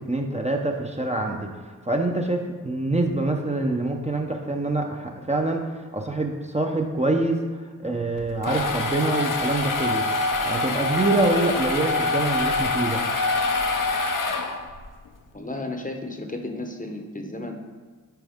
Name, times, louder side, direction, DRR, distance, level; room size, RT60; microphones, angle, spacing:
voice 1, 0.0-13.0, right 2 dB, 20° right, 2 dB, 0.8 m, -26 dB
sound 1, 8.2-14.9, left 3 dB, 65° left, 0.8 m, -25 dB
voice 2, 15.3-17.6, left 2 dB, 25° left, 3 dB, 0.9 m, -33 dB
9.1 x 4.0 x 3.6 m, 1.5 s
cardioid pair, 55°, 34 cm